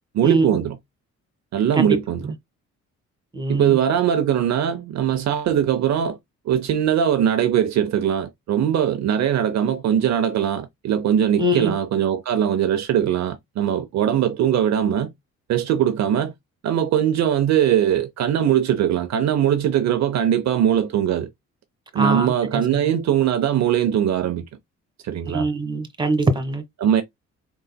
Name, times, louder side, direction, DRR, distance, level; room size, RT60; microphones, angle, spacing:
voice 1, 0.1-0.8 1.5-2.3 3.5-6.2 6.5-15.1 15.5-16.3 16.6-21.3 21.9-24.4 25.0-25.5 26.8-27.0, right 9 dB, 65° right, 0.7 m, -21 dB
voice 2, 3.3-3.8 11.4-11.7 21.9-22.3 25.2-26.6, right 1 dB, 15° right, 1.5 m, -22 dB
4.7 x 4.0 x 2.2 m
cardioid pair, 90°, 30 cm